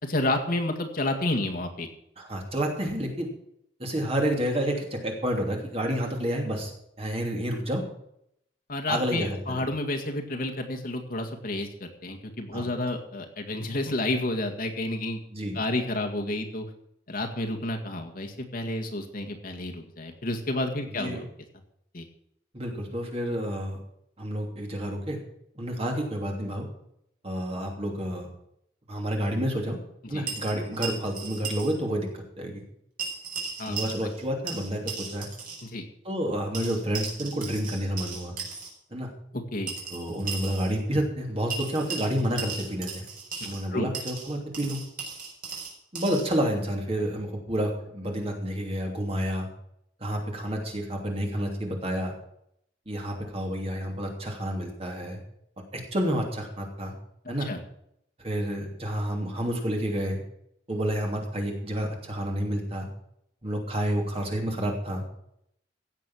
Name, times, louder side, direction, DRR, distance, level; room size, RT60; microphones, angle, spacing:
voice 1, 0.0-1.9 8.7-15.2 15.5-16.7 17.1-21.2 21.9-22.1 30.0-30.3 33.6-33.8 35.6-35.9 39.3-39.7 43.7-43.9 57.4-57.6, left 2 dB, 50° left, 3 dB, 1.9 m, -30 dB
voice 2, 2.2-3.3 3.8-6.7 7.0-7.8 8.9-9.6 12.5-12.7 15.3-15.6 20.9-21.2 22.5-23.8 24.2-25.2 25.6-26.7 27.2-28.3 28.9-29.8 30.1-32.1 32.4-32.6 33.7-35.3 36.0-38.3 38.9-39.1 39.9-43.0 43.4-44.8 45.9-49.5 50.0-52.1 52.9-55.2 55.7-56.9 57.3-57.5 58.2-60.2 60.7-62.9 63.4-65.0, equal, 30° right, 1 dB, 2.9 m, -29 dB
sound 1, 30.3-31.7 32.0-32.1 33.0-34.2 34.5-35.6 36.5-38.7 39.7-40.7 41.5-43.6 43.9-46.3, right 5 dB, 50° right, 4.7 m, -36 dB
16.5 x 7.3 x 6.3 m, 0.75 s
head